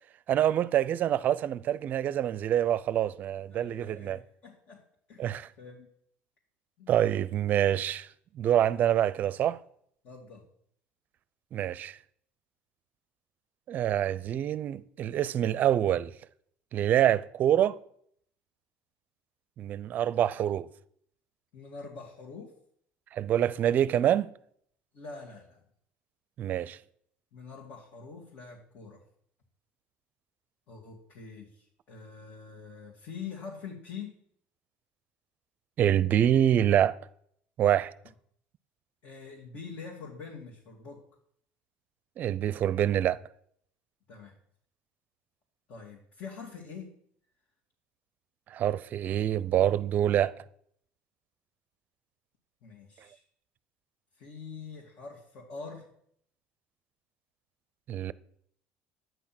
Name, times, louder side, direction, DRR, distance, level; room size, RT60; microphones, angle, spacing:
voice 1, 0.3-4.2 5.2-5.5 6.9-8.1 8.4-9.6 11.5-12.0 13.7-16.1 16.7-17.8 19.6-20.7 23.1-24.3 26.4-26.8 35.8-37.0 37.6-37.9 42.2-43.2 48.5-50.3 57.9-58.1, right 11 dB, 45° right, 0.5 m, -26 dB
voice 2, 3.5-5.9 6.8-6.9 10.0-10.5 20.0-20.1 21.5-22.5 24.9-25.6 27.3-29.0 30.7-34.2 39.0-41.0 44.1-44.3 45.7-47.0 52.6-53.2 54.2-55.9, left 5 dB, 55° left, 2.2 m, -45 dB
11.0 x 9.1 x 6.0 m
cardioid pair, 130°, 4 cm